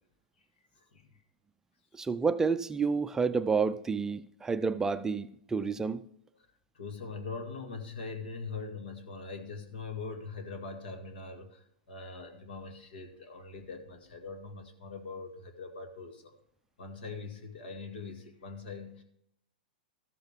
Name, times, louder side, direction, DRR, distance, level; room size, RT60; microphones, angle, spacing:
voice 1, 0.8-1.1 6.7-16.2 16.8-19.0, left 4 dB, 80° left, 2.0 m, -42 dB
voice 2, 1.9-6.0, right 5 dB, 10° right, 0.4 m, -29 dB
13.5 x 8.0 x 3.5 m
hypercardioid pair, 140°, 5 cm